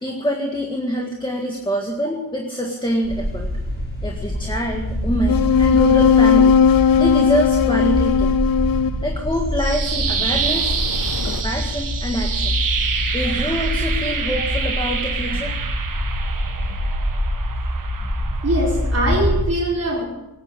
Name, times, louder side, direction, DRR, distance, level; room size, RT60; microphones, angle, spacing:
voice 1, 0.0-3.5 4.0-8.4 9.0-10.8 11.2-12.6 13.1-15.6, equal, 15° left, 1 dB, 1.8 m, -25 dB
sound 1, 3.0-19.4, left 1 dB, 35° left, 4.0 m, -25 dB
sound 2, 5.3-9.1 10.7-11.4, left 7 dB, 70° left, 0.6 m, -17 dB
sound 3, 9.3-19.4, right 6 dB, 60° right, 1.5 m, -27 dB
voice 2, 18.4-20.0, right 1 dB, 40° right, -5 dB, 4.6 m, -22 dB
19.0 x 9.9 x 7.7 m, 1.0 s
wide cardioid pair, 140°, 36 cm